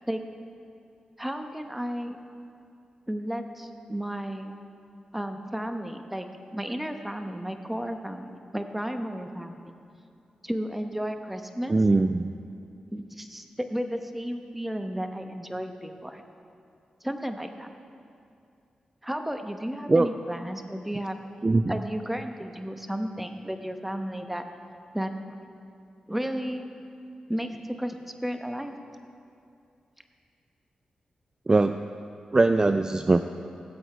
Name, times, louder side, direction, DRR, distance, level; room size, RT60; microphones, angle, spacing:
voice 1, 1.2-2.2 3.1-4.5 5.1-6.3 6.5-9.7 10.4-11.8 12.9-16.2 17.0-17.7 19.0-21.2 21.7-24.4 24.9-25.1 26.1-26.7 27.3-27.5 27.8-28.8, equal, 5° right, 6 dB, 0.9 m, -33 dB
voice 2, 11.7-12.3 19.9-20.1 21.4-21.8 31.5-31.8 32.3-33.2, right 3 dB, 30° right, 9 dB, 0.4 m, -21 dB
17.0 x 8.0 x 4.5 m, 2.5 s
cardioid pair, 60°, 2 cm